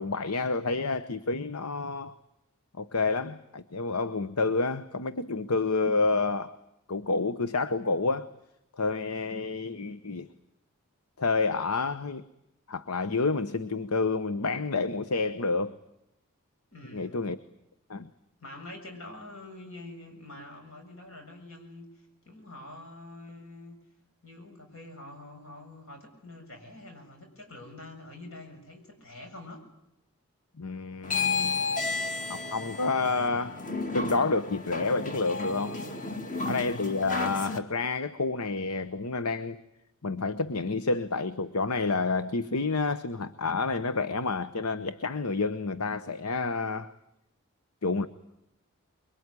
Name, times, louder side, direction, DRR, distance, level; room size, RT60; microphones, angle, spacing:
voice 1, 0.0-2.1 2.8-6.5 6.9-8.3 8.8-10.3 11.2-12.2 12.7-15.8 16.9-17.4 17.9-18.1 30.6-31.6 32.3-33.6 33.9-35.8 36.4-39.6 40.0-46.9 47.8-48.1, left 3 dB, 85° left, 13 dB, 1.0 m, -29 dB
voice 2, 16.7-17.2 18.4-23.8 24.2-29.6, left 2 dB, 65° left, 4 dB, 7.0 m, -46 dB
sound 1, 31.0-37.6, left 4 dB, 35° left, 2.1 m, -32 dB
25.0 x 23.0 x 9.7 m, 0.83 s
head